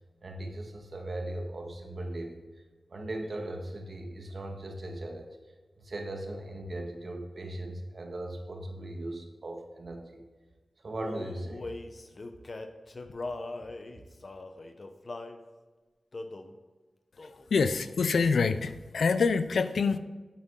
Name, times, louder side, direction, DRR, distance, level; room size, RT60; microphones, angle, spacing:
voice 1, 0.2-2.4 2.9-5.3 5.8-10.2 10.8-11.7, right 1 dB, 60° right, 2 dB, 1.8 m, -38 dB
Male singing, 11.0-15.4 16.1-16.5 17.2-17.5 17.7-18.7, left 2 dB, 55° left, 0.8 m, -41 dB
voice 2, 17.5-20.0, left 5 dB, 85° left, 12 dB, 0.5 m, -26 dB
8.5 x 8.2 x 3.8 m, 1.3 s
cardioid pair, 50°, 0 cm